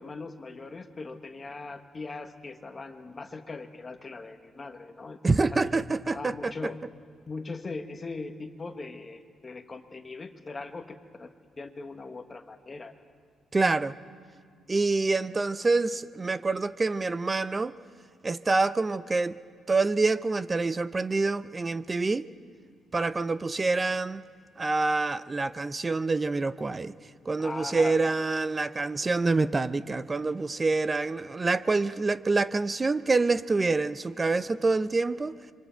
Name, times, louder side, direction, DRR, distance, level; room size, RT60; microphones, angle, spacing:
voice 1, 0.0-6.8 7.3-11.3 11.6-12.9 27.4-28.0, left 3 dB, 25° left, 6 dB, 1.2 m, -40 dB
voice 2, 5.2-6.7 13.5-13.9 14.7-17.8 18.2-19.4 19.7-22.3 22.9-24.2 24.6-26.9 27.3-35.3, right 3 dB, 20° right, 14 dB, 0.5 m, -26 dB
27.0 x 24.5 x 4.5 m, 2.2 s
cardioid pair, 155°, 0 cm